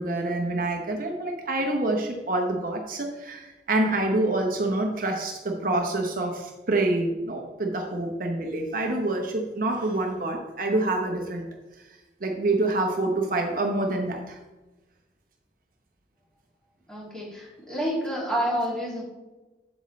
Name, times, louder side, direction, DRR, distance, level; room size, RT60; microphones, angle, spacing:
voice 1, 0.0-11.4 12.2-14.4, right 2 dB, 50° right, 2 dB, 0.9 m, -27 dB
voice 2, 16.9-19.0, equal, 5° left, -6 dB, 2.7 m, -29 dB
8.1 x 8.0 x 3.2 m, 1.1 s
head